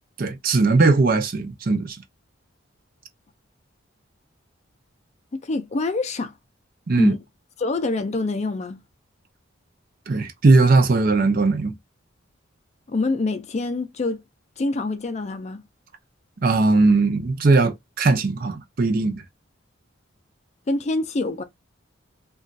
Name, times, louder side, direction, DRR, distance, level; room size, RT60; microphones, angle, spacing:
voice 1, 0.2-2.0 6.9-7.1 10.1-11.7 16.4-19.2, right 3 dB, 45° right, 0.5 m, -19 dB
voice 2, 5.3-6.3 7.0-7.2 7.6-8.8 12.9-14.2 14.6-15.6 20.7-21.4, left 3 dB, 35° left, 0.4 m, -26 dB
3.0 x 2.3 x 2.5 m
head